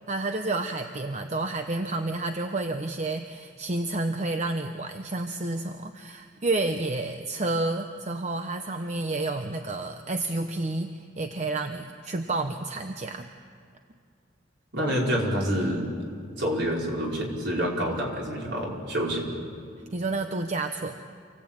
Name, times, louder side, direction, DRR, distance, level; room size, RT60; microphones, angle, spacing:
voice 1, 0.1-13.3 19.9-21.0, right 2 dB, 40° right, 6 dB, 0.9 m, -30 dB
voice 2, 14.7-15.8 16.4-19.3, equal, 65° right, -2 dB, 5.0 m, -27 dB
28.0 x 16.5 x 8.8 m, 2.3 s
head